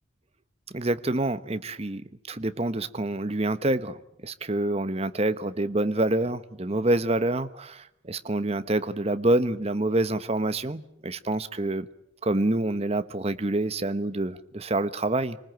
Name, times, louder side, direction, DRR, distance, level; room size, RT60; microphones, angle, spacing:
voice 1, 0.7-11.9 12.2-15.4, right 2 dB, 30° right, 1.0 m, -27 dB
27.0 x 19.5 x 9.1 m
head